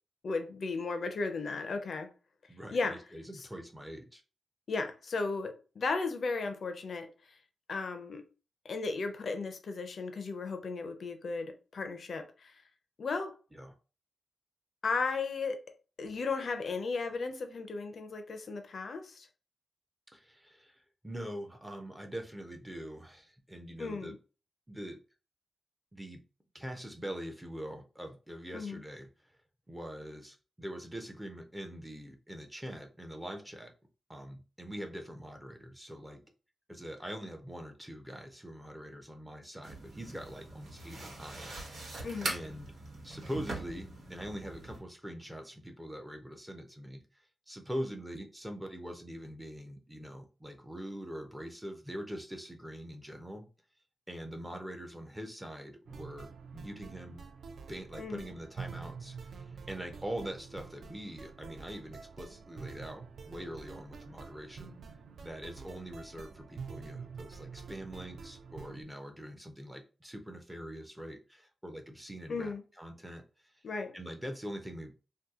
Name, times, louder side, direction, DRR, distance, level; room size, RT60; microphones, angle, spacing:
voice 1, 0.2-2.1 2.7-3.0 3.3-3.5 4.7-7.4 7.7-8.2 8.6-12.6 13.0-13.4 14.8-15.6 16.0-19.3 23.8-24.2 28.5-28.8 42.0-42.3 58.0-58.3 72.3-72.6 73.6-73.9, left 4 dB, 50° left, 0.5 m, -35 dB
voice 2, 2.5-4.2 13.5-13.7 20.1-24.2 24.7-25.0 25.9-26.2 26.5-29.1 29.7-33.7 34.1-36.2 36.7-42.7 43.0-47.0 47.5-53.5 54.1-57.2 57.7-64.8 65.2-73.2 73.5-73.6 73.9-75.0, equal, 5° right, 0.5 m, -43 dB
sound 1, 39.6-44.8, right 2 dB, 85° right, 1.3 m, -42 dB
sound 2, 55.9-68.8, right 5 dB, 60° right, 0.4 m, -47 dB
2.8 x 2.2 x 3.6 m
wide cardioid pair, 160°, 0 cm